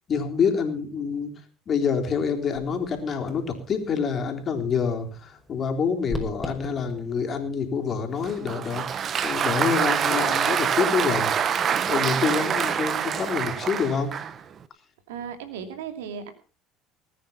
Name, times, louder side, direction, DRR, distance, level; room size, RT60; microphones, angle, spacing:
voice 1, 0.1-1.3 1.7-11.3 11.9-14.1, left 6 dB, 45° left, 5 dB, 3.7 m, -27 dB
sound 1, 1.8-9.5, equal, ahead, 5.6 m, -43 dB
Applause, 8.2-14.4, right 8 dB, 45° right, 1.2 m, -25 dB
voice 2, 11.9-12.3 15.1-16.3, right 7 dB, 85° right, 9 dB, 2.5 m, -36 dB
19.5 x 9.5 x 5.7 m, 0.38 s
hypercardioid pair, 75°, 0 cm